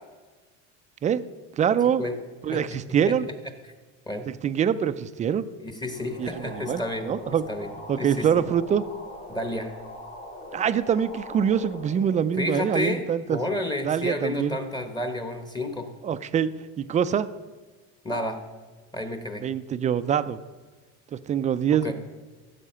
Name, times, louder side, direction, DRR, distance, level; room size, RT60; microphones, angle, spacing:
voice 1, 1.6-2.0 2.4-3.3 4.3-5.4 6.2-7.4 7.9-8.8 10.5-13.4 13.8-14.6 16.0-16.5 16.8-17.3 19.4-20.4 21.1-21.9, right 8 dB, 20° right, 13 dB, 0.4 m, -24 dB
voice 2, 5.6-7.1 7.5-8.4 9.3-9.7 12.4-15.9 18.0-18.4 18.9-19.5 21.8-21.9, left 1 dB, 10° left, 7 dB, 1.0 m, -31 dB
sound 1, 5.9-13.3, left 2 dB, 45° left, 4.4 m, -42 dB
15.0 x 7.2 x 5.6 m, 1.3 s
cardioid pair, 140°, 34 cm